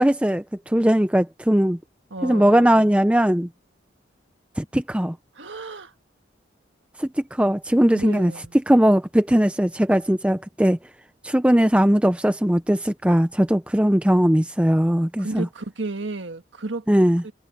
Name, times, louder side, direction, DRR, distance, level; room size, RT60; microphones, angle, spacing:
voice 1, 0.0-1.8 2.2-3.5 4.6-5.2 7.0-8.3 8.7-10.8 11.2-15.5 16.9-17.2, equal, 5° right, 0.6 m, -19 dB
voice 2, 2.1-2.9 5.3-5.9 7.9-8.6 15.2-16.9 17.2-17.3, right 2 dB, 85° right, 1.7 m, -32 dB
head